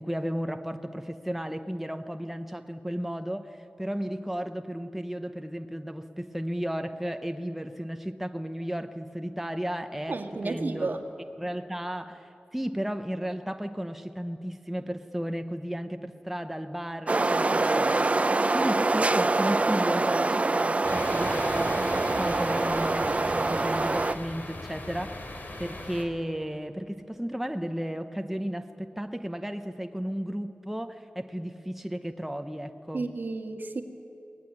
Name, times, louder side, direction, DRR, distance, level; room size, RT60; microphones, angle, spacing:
voice 1, 0.0-11.0 11.4-33.1, equal, 5° right, 7 dB, 0.9 m, -34 dB
voice 2, 10.1-11.0 32.9-33.8, right 3 dB, 60° right, 4 dB, 1.8 m, -32 dB
sound 1, 17.1-24.2, right 2 dB, 40° right, 0.6 m, -25 dB
sound 2, 20.8-26.0, left 1 dB, 60° left, 3.1 m, -39 dB
23.0 x 19.0 x 9.8 m, 2.7 s
wide cardioid pair, 90°, 4 cm